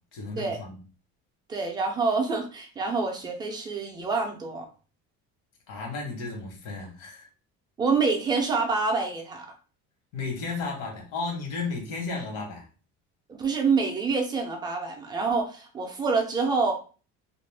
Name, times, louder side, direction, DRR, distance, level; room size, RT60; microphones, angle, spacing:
voice 1, 0.1-0.8 5.7-7.3 10.1-12.7, left 4 dB, 75° left, 1 dB, 1.2 m, -33 dB
voice 2, 1.5-4.7 7.8-9.5 13.3-16.7, right 4 dB, 15° right, 2 dB, 0.3 m, -26 dB
2.4 x 2.1 x 3.2 m, 0.36 s
cardioid pair, 180°, 32 cm